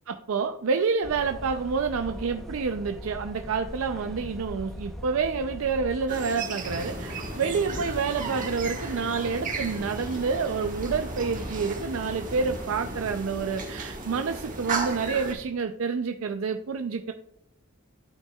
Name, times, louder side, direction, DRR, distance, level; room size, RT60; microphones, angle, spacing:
voice 1, 0.1-17.1, right 5 dB, 75° right, 7 dB, 0.4 m, -28 dB
sound 1, 1.0-6.1, equal, ahead, 0.7 m, -40 dB
sound 2, 6.1-15.3, right 3 dB, 40° right, 1.4 m, -35 dB
sound 3, 6.6-13.1, left 1 dB, 80° left, 2.7 m, -40 dB
13.0 x 5.6 x 2.3 m, 0.76 s
head